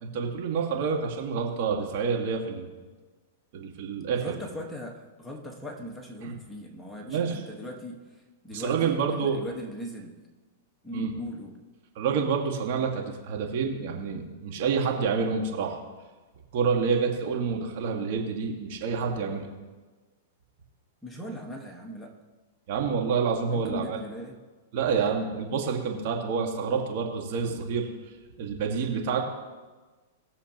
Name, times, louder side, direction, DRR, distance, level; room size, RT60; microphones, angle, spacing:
voice 1, 0.0-2.7 3.5-4.4 6.2-6.3 7.1-7.4 8.5-9.5 10.9-11.1 12.0-15.8 16.5-19.5 22.7-24.0 24.7-27.9 28.4-29.2, right 5 dB, 55° right, 1 dB, 2.0 m, -28 dB
voice 2, 4.1-10.2 10.8-11.6 21.0-22.1 23.5-24.4, equal, 5° left, 0 dB, 1.6 m, -40 dB
20.0 x 7.1 x 3.1 m, 1.3 s
hypercardioid pair, 120°, 0 cm